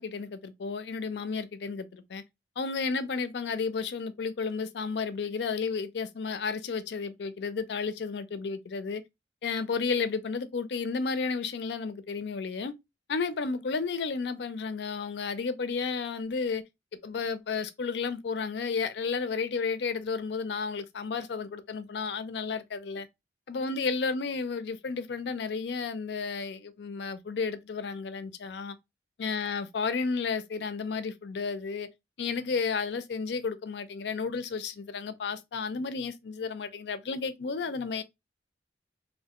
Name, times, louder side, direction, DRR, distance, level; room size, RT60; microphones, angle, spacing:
voice 1, 0.0-2.2 2.6-9.0 9.4-12.7 13.1-16.6 17.0-23.1 23.5-28.8 29.2-31.9 32.2-38.0, left 5 dB, 75° left, 0.4 m, -32 dB
3.2 x 2.6 x 2.8 m
head